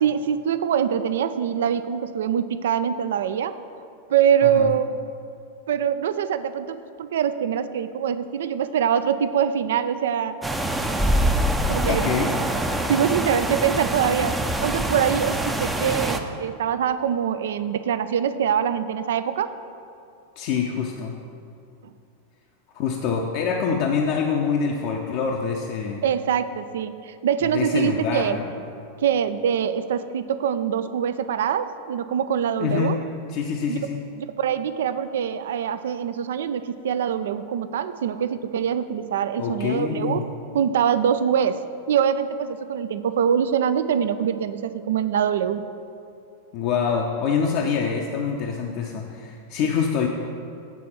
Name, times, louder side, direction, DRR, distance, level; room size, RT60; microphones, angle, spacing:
voice 1, 0.0-3.5 4.1-5.0 5.7-10.3 11.2-11.3 11.7-12.2 12.9-19.5 21.8-21.9 26.0-28.4 29.0-33.0 33.7-33.8 34.2-40.2 40.5-41.6 41.9-45.6, right 8 dB, 60° right, 12 dB, 0.4 m, -24 dB
sound 1, 10.4-16.2, right 1 dB, 10° right, 0.5 m, -24 dB
voice 2, 11.8-12.3 20.4-21.1 22.7-26.0 27.4-28.5 32.6-33.0 33.3-34.0 39.4-40.3 46.5-50.1, left 6 dB, 45° left, 1 dB, 0.6 m, -25 dB
8.3 x 4.2 x 7.1 m, 2.5 s
figure-of-eight pair, 90°, 0 cm